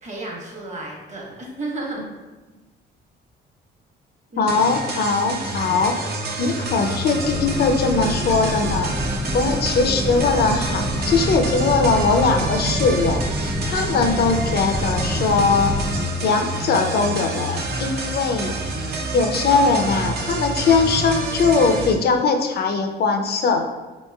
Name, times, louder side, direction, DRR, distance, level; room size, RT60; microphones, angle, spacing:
voice 1, 0.0-2.0 4.3-4.6 9.8-10.2 13.9-14.3, right 2 dB, 35° right, -2 dB, 1.0 m, -33 dB
voice 2, 4.4-5.9 6.4-9.0 9.3-15.7 16.2-18.5 19.1-23.7, left 4 dB, 55° left, 5 dB, 0.5 m, -20 dB
sound 1, 4.5-21.9, right 2 dB, 55° right, 0.6 m, -28 dB
sound 2, 7.1-16.0, equal, 5° right, 0.4 m, -27 dB
4.1 x 3.0 x 2.2 m, 1.2 s
cardioid pair, 90°, 20 cm